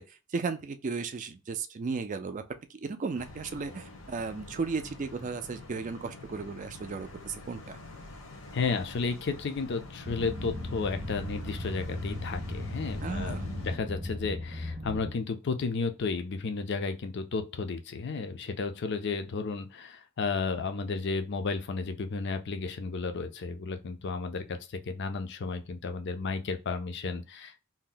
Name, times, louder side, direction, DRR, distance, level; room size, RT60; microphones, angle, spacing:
voice 1, 0.0-2.4 2.7-7.8 13.0-13.6, right 4 dB, 35° right, 0.4 m, -35 dB
sound 1, 3.2-13.8, left 2 dB, 75° left, 0.8 m, -46 dB
voice 2, 8.5-24.6 24.9-27.6, left 4 dB, 55° left, 0.5 m, -33 dB
sound 2, 10.0-15.1, left 1 dB, 20° right, 0.8 m, -37 dB
2.8 x 2.1 x 3.8 m
head